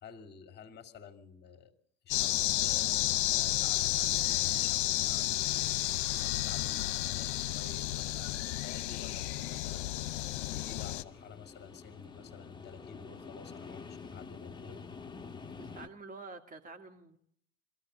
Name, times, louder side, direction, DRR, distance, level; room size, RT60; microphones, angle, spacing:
voice 1, 0.0-1.8 2.0-5.7 6.1-14.8, left 6 dB, 30° left, 7 dB, 2.6 m, -51 dB
sound 1, 2.1-11.0, left 15 dB, 65° left, 0.9 m, -31 dB
sound 2, 9.1-15.9, left 5 dB, 10° left, 1.2 m, -48 dB
voice 2, 15.6-17.2, right 3 dB, 25° right, 5 dB, 2.5 m, -48 dB
22.0 x 14.0 x 8.7 m, 0.70 s
hypercardioid pair, 90°, 36 cm